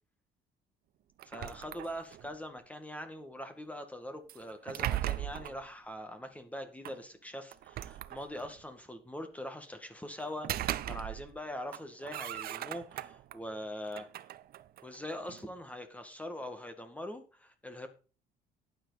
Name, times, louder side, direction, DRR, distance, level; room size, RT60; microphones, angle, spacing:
voice 1, 1.2-14.1 14.8-17.9, left 1 dB, 10° left, 7 dB, 2.0 m, -42 dB
sound 1, 1.2-2.3 4.3-5.6 6.8-7.0 7.5-8.6 10.2-11.4 11.7-13.4 13.8-15.5, right 13 dB, 65° right, 0.8 m, -38 dB
12.0 x 9.7 x 4.1 m, 0.36 s
cardioid pair, 110°, 17 cm